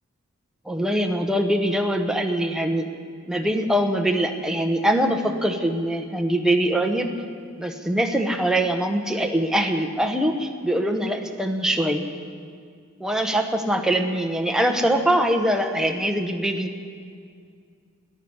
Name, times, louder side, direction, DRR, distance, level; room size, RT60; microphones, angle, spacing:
voice 1, 0.6-2.9 3.3-7.1 7.6-12.1 13.0-16.7, right 1 dB, 5° right, 4 dB, 0.9 m, -23 dB
14.0 x 10.5 x 9.5 m, 2.2 s
head